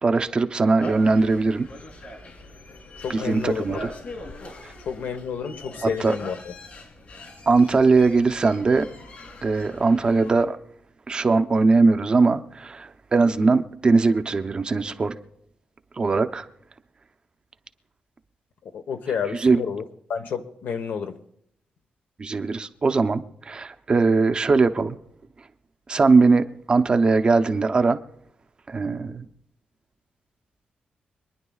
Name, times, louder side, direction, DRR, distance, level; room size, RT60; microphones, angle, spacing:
voice 1, 0.0-1.7 3.1-3.9 5.8-6.1 7.5-8.9 9.4-10.6 11.1-15.1 16.0-16.4 19.4-19.6 22.2-25.0 25.9-28.0 28.7-29.3, right 3 dB, 30° right, 0.6 m, -20 dB
sound 1, 0.8-10.4, left 1 dB, 50° left, 3.1 m, -41 dB
voice 2, 3.0-3.9 4.8-6.5 18.6-19.8 20.1-21.2 28.7-29.0, left 6 dB, 80° left, 1.1 m, -30 dB
25.5 x 10.5 x 2.3 m
wide cardioid pair, 150°, 3 cm